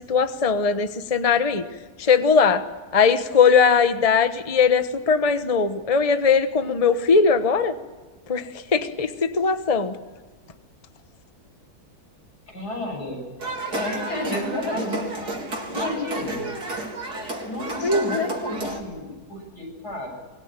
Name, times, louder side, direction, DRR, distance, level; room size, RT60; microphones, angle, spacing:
voice 1, 0.1-1.6 2.0-2.6 2.9-7.7 8.3-9.9 17.8-18.3, left 5 dB, 25° left, 9 dB, 1.2 m, -20 dB
voice 2, 12.5-13.2 13.7-15.0 15.3-16.5 17.4-20.1, left 1 dB, 90° left, 1 dB, 8.5 m, -31 dB
sound 1, 13.4-18.8, right 2 dB, 85° right, 4.4 m, -31 dB
24.5 x 22.0 x 9.0 m, 1.3 s
omnidirectional pair, 1.7 m